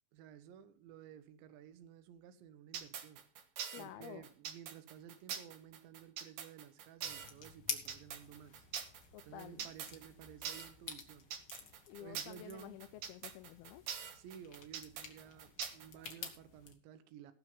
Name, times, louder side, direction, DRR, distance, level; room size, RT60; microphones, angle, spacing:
voice 1, 0.1-3.2 3.8-8.7 9.2-11.3 12.0-12.8 14.1-17.3, right 9 dB, 85° right, 3.3 m, -54 dB
sound 1, 2.7-16.3, right 8 dB, 65° right, 2.2 m, -44 dB
voice 2, 3.7-4.2 9.1-9.7 11.9-13.8, left 13 dB, 80° left, 2.3 m, -51 dB
sound 2, 7.0-16.7, left 6 dB, 55° left, 1.5 m, -49 dB
18.0 x 6.2 x 5.4 m
omnidirectional pair, 5.1 m